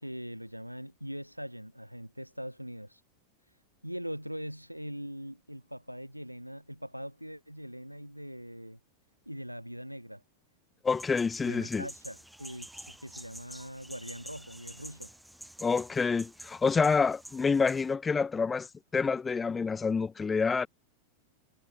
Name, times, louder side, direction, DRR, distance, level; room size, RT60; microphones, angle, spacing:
voice 1, 0.0-3.0 3.8-8.8 9.3-10.2 11.4-15.1, equal, 90° right, 2.5 m, -41 dB
voice 2, 10.8-11.9 15.6-20.7, left 5 dB, 15° left, 0.8 m, -28 dB
sound 1, 10.9-17.9, right 1 dB, ahead, 2.1 m, -49 dB
figure-of-eight pair, 90°, 0 cm